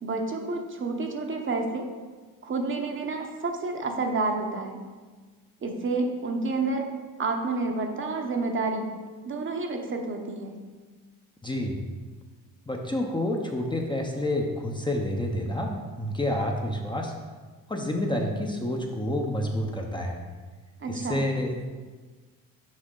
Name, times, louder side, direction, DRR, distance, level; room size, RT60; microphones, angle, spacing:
voice 1, 0.0-1.9 2.4-4.8 5.6-6.9 7.2-8.9 9.2-10.5 20.8-21.2, right 3 dB, 35° right, 3 dB, 0.9 m, -29 dB
voice 2, 11.4-11.8 12.7-17.1 17.7-20.2 20.9-21.7, left 1 dB, 15° left, 1 dB, 0.7 m, -29 dB
6.4 x 5.4 x 3.8 m, 1.4 s
cardioid pair, 95°, 35 cm